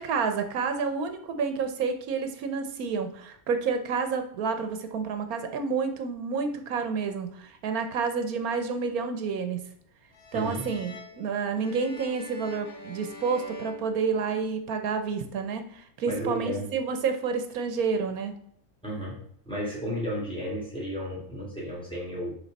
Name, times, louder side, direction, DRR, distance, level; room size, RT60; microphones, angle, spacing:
voice 1, 0.0-9.6 10.3-18.4, right 5 dB, 90° right, 7 dB, 1.3 m, -29 dB
sound 1, 10.1-14.7, left 2 dB, 85° left, 1.7 m, -45 dB
voice 2, 10.3-10.7 16.1-16.7 18.8-19.2 19.4-22.4, equal, 5° left, -6 dB, 3.2 m, -33 dB
11.0 x 3.9 x 4.1 m, 0.64 s
omnidirectional pair, 1.5 m